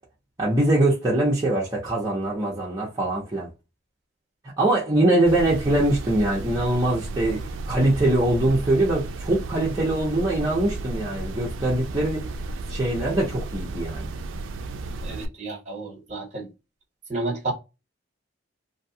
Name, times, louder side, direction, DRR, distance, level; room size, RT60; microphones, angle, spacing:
voice 1, 0.4-3.5 4.6-12.3 12.7-14.1, right 1 dB, 20° right, 0.7 m, -23 dB
sound 1, 5.3-15.3, right 2 dB, 70° right, 0.3 m, -33 dB
voice 2, 15.0-16.5 17.1-17.5, right 2 dB, 35° right, 1.0 m, -31 dB
2.6 x 2.3 x 2.7 m
head